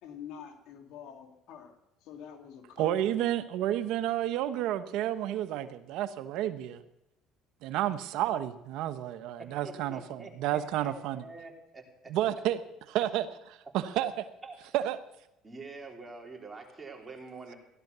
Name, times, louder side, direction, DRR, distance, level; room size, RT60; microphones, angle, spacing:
voice 1, 0.0-3.4 9.3-9.4 9.7-9.8, left 8 dB, 75° left, 6 dB, 2.5 m, -47 dB
voice 2, 2.8-6.8 7.6-11.2 12.1-12.6 12.9-13.3 13.7-14.1 14.7-15.0, right 12 dB, 75° right, 11 dB, 1.0 m, -30 dB
voice 3, 9.4-12.1 14.4-14.6 15.4-17.6, right 4 dB, 20° right, 2 dB, 3.5 m, -46 dB
16.0 x 12.0 x 6.8 m, 0.88 s
cardioid pair, 105°, 0 cm